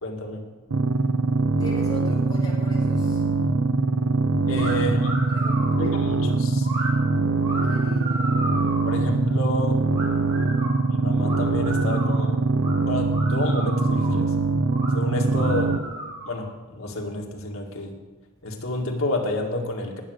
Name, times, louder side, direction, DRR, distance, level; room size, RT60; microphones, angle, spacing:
voice 1, 0.0-0.4 4.5-5.2 5.8-6.7 8.9-9.8 10.8-12.4 12.9-14.3 14.9-15.8 16.3-17.9 18.4-20.0, left 1 dB, 90° left, 1 dB, 2.2 m, -29 dB
sound 1, 0.7-15.8, right 3 dB, 85° right, 0.8 m, -23 dB
voice 2, 1.6-3.3 4.5-4.7 5.3-6.0 7.6-8.4, left 2 dB, 20° left, -5 dB, 4.2 m, -40 dB
sound 2, 4.5-4.7 5.0-5.8 6.6-6.9 7.4-8.9 9.9-10.7 11.2-12.2 12.6-12.7 13.1-14.1 14.7-14.9 15.3-16.4, right 2 dB, 60° right, 5.5 m, -34 dB
18.5 x 7.6 x 6.5 m, 1.3 s
head